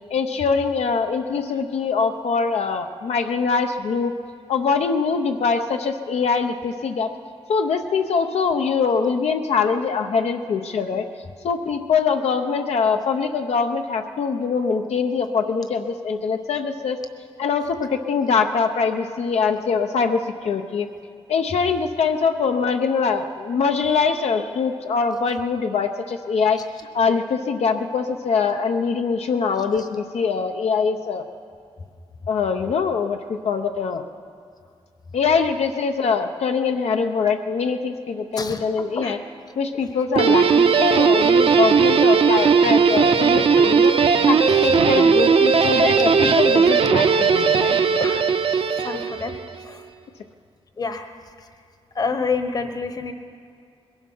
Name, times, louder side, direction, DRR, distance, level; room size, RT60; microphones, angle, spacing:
voice 1, 0.1-4.1 4.5-7.1 7.5-11.1 11.4-17.0 17.4-20.9 21.3-26.6 26.9-31.3 32.3-34.0 35.1-39.2 39.6-43.9 44.3-47.8, left 5 dB, 80° left, 5 dB, 0.7 m, -23 dB
Guitar, 40.2-49.5, right 5 dB, 60° right, 0.7 m, -17 dB
voice 2, 48.8-49.3 50.8-51.0 52.0-53.1, left 4 dB, 35° left, 7 dB, 1.1 m, -26 dB
21.5 x 12.0 x 5.6 m, 2.3 s
wide cardioid pair, 140°, 11 cm